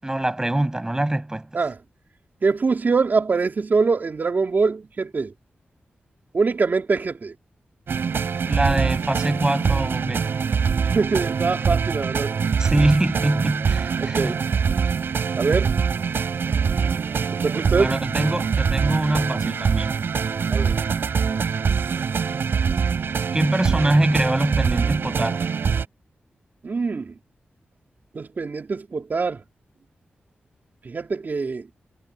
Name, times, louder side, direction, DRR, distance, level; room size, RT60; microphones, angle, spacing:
voice 1, 0.0-1.5 8.4-10.4 12.6-14.4 17.8-20.0 23.3-25.5, right 1 dB, 15° right, 7.1 m, -23 dB
voice 2, 2.4-5.3 6.3-7.3 10.9-12.3 14.0-14.4 15.3-15.7 17.3-17.9 20.5-20.8 26.6-27.1 28.1-29.4 30.8-31.7, right 4 dB, 55° right, 3.8 m, -23 dB
sound 1, 7.9-25.9, right 6 dB, 80° right, 3.9 m, -23 dB
wide cardioid pair, 80°, 4 cm